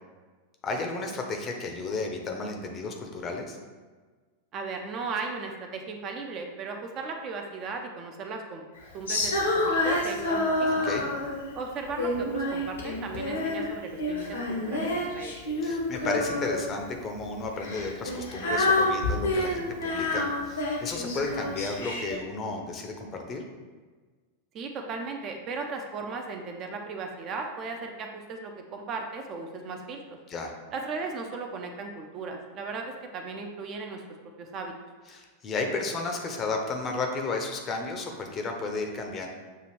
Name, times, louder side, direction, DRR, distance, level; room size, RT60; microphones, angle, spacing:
voice 1, 0.6-3.6 10.7-11.1 15.6-23.4 30.3-30.5 35.1-39.3, left 3 dB, 25° left, 3 dB, 0.6 m, -33 dB
voice 2, 4.5-8.6 8.9-10.9 11.5-15.3 24.5-30.0 30.7-34.0 34.4-34.7, right 4 dB, 35° right, 3 dB, 0.5 m, -36 dB
Female singing, 9.1-11.4 12.0-13.7 14.0-16.8 17.6-22.2, left 2 dB, 70° left, 0.8 m, -28 dB
6.7 x 2.4 x 3.1 m, 1.4 s
figure-of-eight pair, 90°, 0 cm